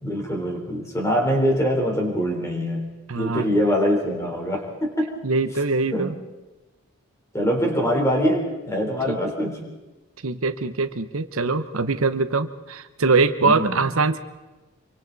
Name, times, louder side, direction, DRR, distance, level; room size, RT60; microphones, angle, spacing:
voice 1, 0.0-5.1 5.9-6.1 7.3-9.6 13.4-13.9, equal, 15° left, 0 dB, 3.8 m, -24 dB
voice 2, 3.1-3.5 5.2-6.1 9.1-9.2 10.2-14.2, right 3 dB, 80° right, 10 dB, 0.9 m, -23 dB
26.5 x 24.0 x 4.1 m, 1.2 s
head